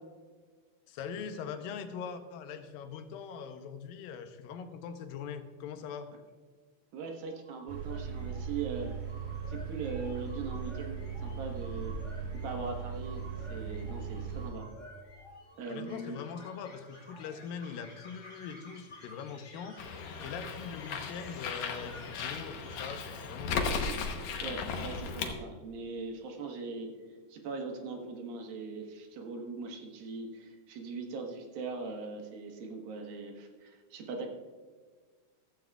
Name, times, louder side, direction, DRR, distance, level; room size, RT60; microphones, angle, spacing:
voice 1, 0.9-6.1 15.7-19.8 20.2-23.8, left 7 dB, 85° left, 8 dB, 2.5 m, -42 dB
voice 2, 6.9-8.9 9.5-11.9 12.4-14.7 15.6-16.2 24.4-26.9 27.3-34.3, right 4 dB, 85° right, 2 dB, 3.2 m, -40 dB
sound 1, 7.2-23.7, left 1 dB, 25° left, 1.0 m, -53 dB
sound 2, 7.7-14.5, right 6 dB, 55° right, 2.3 m, -39 dB
Bird, 19.8-25.3, left 5 dB, 65° left, 1.9 m, -36 dB
15.0 x 14.0 x 2.4 m, 1.5 s
omnidirectional pair, 4.0 m